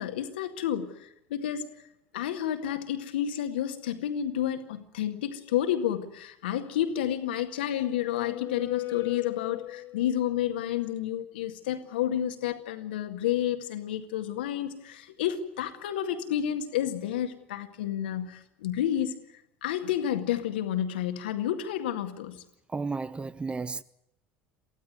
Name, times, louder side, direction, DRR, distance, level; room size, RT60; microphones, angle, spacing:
voice 1, 0.0-1.6 2.1-19.2 19.6-22.4, left 11 dB, 70° left, 1.9 m, -30 dB
sound 1, 7.2-10.3, left 15 dB, 45° left, 1.0 m, -38 dB
voice 2, 22.7-23.8, right 4 dB, 20° right, 0.8 m, -33 dB
24.0 x 15.5 x 9.5 m
figure-of-eight pair, 70°, 6 cm